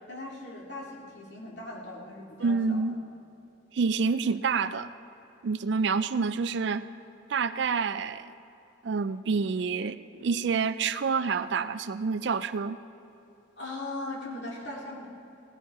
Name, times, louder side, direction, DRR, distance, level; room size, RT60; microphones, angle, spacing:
voice 1, 0.1-3.0 13.6-15.1, left 2 dB, 60° left, -3 dB, 2.5 m, -39 dB
voice 2, 2.4-3.0 3.7-4.9 5.4-6.9 7.3-8.3 8.8-12.8, right 5 dB, 60° right, 13 dB, 0.4 m, -28 dB
17.5 x 11.0 x 4.8 m, 2.8 s
head